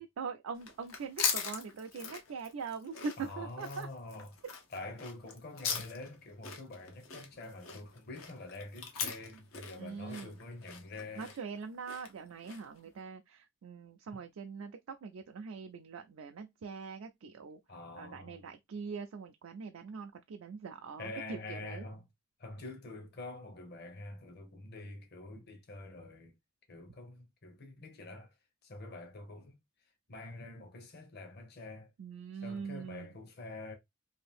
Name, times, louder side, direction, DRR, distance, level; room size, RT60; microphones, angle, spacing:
voice 1, 0.0-3.9 9.8-10.4 11.1-17.6 18.0-21.9 32.0-33.2, right 5 dB, 85° right, 0.4 m, -42 dB
sound 1, 0.5-12.8, left 6 dB, 85° left, 0.8 m, -40 dB
voice 2, 3.2-4.3 4.7-11.3 17.7-18.5 21.0-22.0 22.4-26.3 26.7-28.3 28.6-29.6 30.1-31.9 32.4-33.8, left 2 dB, 50° left, 0.9 m, -46 dB
2.8 x 2.6 x 3.3 m
head